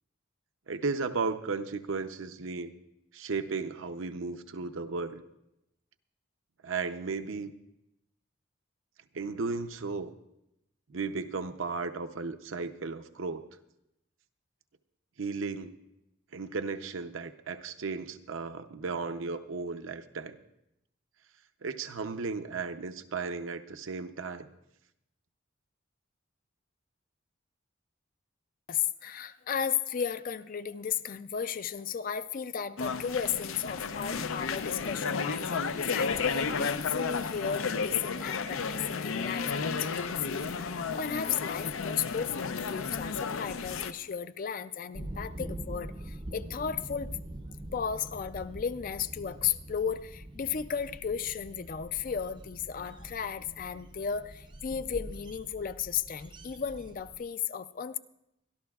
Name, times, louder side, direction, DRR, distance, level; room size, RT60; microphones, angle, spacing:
voice 1, 0.7-2.7 3.1-5.2 6.6-7.5 9.1-10.1 10.9-13.4 15.2-15.8 16.3-20.4 21.6-24.5, right 4 dB, 75° right, 8 dB, 0.7 m, -35 dB
voice 2, 28.7-47.2 47.7-58.0, left 7 dB, 40° left, 13 dB, 0.4 m, -34 dB
sound 1, 32.8-43.9, left 5 dB, 85° left, 0.6 m, -33 dB
sound 2, 44.9-57.2, right 1 dB, 25° right, 0.5 m, -44 dB
24.0 x 12.0 x 2.4 m, 0.84 s
head